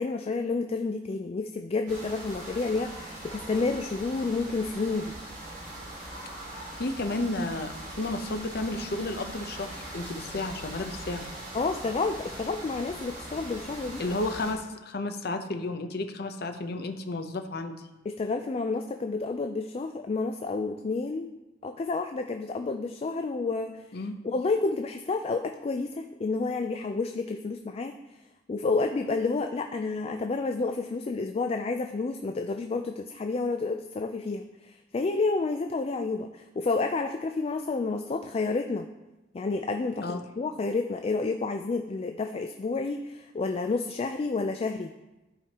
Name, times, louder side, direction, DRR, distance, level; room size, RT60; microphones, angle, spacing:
voice 1, 0.0-5.1 11.5-14.0 18.1-21.4 21.6-23.8 24.2-28.0 28.5-38.9 39.3-44.9, left 3 dB, 35° left, 6 dB, 0.3 m, -30 dB
sound 1, 1.9-14.5, right 1 dB, 45° right, 2.5 m, -41 dB
voice 2, 6.8-11.3 14.0-17.7 23.9-24.1 40.0-40.2, left 2 dB, 60° left, 6 dB, 0.7 m, -32 dB
13.5 x 5.0 x 2.9 m, 1.1 s
head